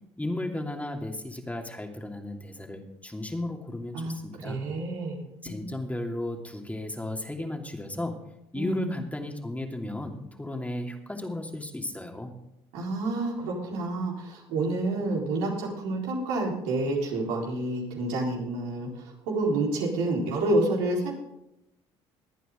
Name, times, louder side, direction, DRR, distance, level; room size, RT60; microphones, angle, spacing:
voice 1, 0.2-4.6 5.4-8.2 8.5-12.3, left 1 dB, 10° left, 3 dB, 2.7 m, -34 dB
voice 2, 3.9-5.2 5.4-5.6 8.5-8.9 12.7-18.9 19.3-21.1, right 2 dB, 80° right, -2 dB, 4.2 m, -28 dB
22.5 x 9.1 x 3.8 m, 0.83 s
hypercardioid pair, 65°, 13 cm